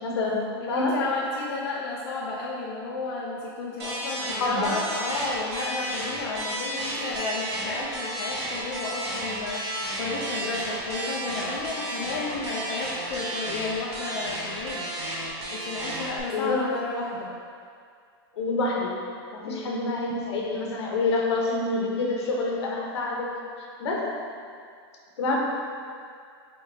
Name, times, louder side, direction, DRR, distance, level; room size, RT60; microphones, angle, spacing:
voice 1, 0.0-0.9 4.4-4.7 16.3-16.6 18.3-18.9 19.3-23.3 23.8-24.1 25.2-25.4, left 3 dB, 85° left, -2 dB, 1.0 m, -27 dB
voice 2, 0.5-14.9 15.5-17.3 19.4-19.8, left 3 dB, 60° left, -4 dB, 0.5 m, -32 dB
sound 1, 3.8-16.2, right 1 dB, 90° right, 1.2 m, -32 dB
5.3 x 3.7 x 2.7 m, 2.2 s
supercardioid pair, 155°, 14 cm